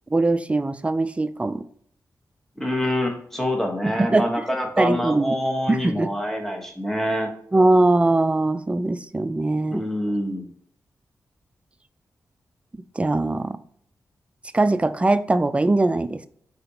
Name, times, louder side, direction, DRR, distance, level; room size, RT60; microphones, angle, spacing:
voice 1, 0.1-1.6 3.8-4.3 4.8-5.3 5.7-6.1 7.5-9.8 13.0-13.6 14.5-16.3, right 2 dB, 20° right, 0.3 m, -21 dB
voice 2, 2.6-7.3 9.7-10.4, equal, 5° left, 1.2 m, -26 dB
4.1 x 3.8 x 2.9 m
cardioid pair, 55°, 7 cm